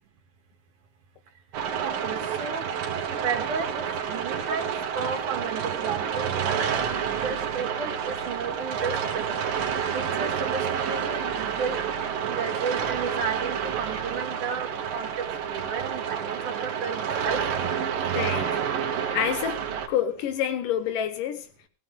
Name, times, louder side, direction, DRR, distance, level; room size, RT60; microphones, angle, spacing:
sound 1, 1.5-19.9, right 8 dB, 85° right, 3.3 m, -29 dB
voice 1, 1.8-2.7 3.2-6.8 7.2-9.4 9.9-11.8 12.3-17.4, right 5 dB, 70° right, 3.2 m, -33 dB
voice 2, 18.1-18.6 19.1-21.5, left 9 dB, 75° left, 2.8 m, -28 dB
16.5 x 16.5 x 3.6 m
omnidirectional pair, 3.8 m